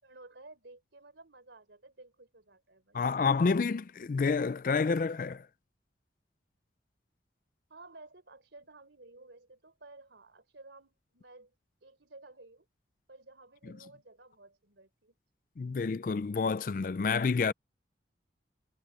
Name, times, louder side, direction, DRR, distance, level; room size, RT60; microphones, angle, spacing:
voice 1, 0.0-3.1 7.7-11.5 11.8-12.7 13.1-15.2, right 2 dB, 85° right, 3.9 m, -54 dB
voice 2, 2.9-5.5 13.7-13.8 15.6-17.5, left 4 dB, 45° left, 0.4 m, -29 dB
head